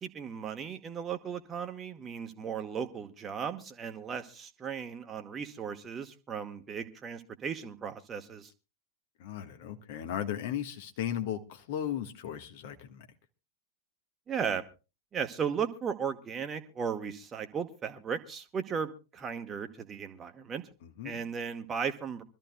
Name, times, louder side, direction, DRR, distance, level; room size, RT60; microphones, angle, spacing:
voice 1, 0.0-8.5 14.3-14.6 15.1-20.6 21.0-22.2, right 7 dB, 25° right, 1.3 m, -36 dB
voice 2, 9.2-13.1 20.8-21.2, left 10 dB, 50° left, 1.4 m, -36 dB
25.5 x 13.5 x 2.2 m
figure-of-eight pair, 90°, 0 cm